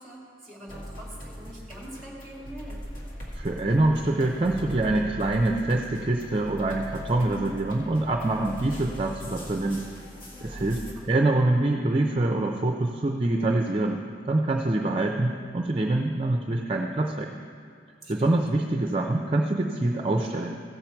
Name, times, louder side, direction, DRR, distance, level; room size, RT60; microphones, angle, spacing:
voice 1, 0.0-2.8 10.9-11.2 18.0-18.4, right 1 dB, ahead, -4 dB, 2.1 m, -44 dB
sound 1, 0.7-10.9, equal, 50° left, 2.0 m, -40 dB
voice 2, 3.3-9.8 10.4-17.3 18.1-20.6, right 2 dB, 30° right, 2 dB, 0.5 m, -25 dB
15.5 x 7.3 x 4.5 m, 2.2 s
head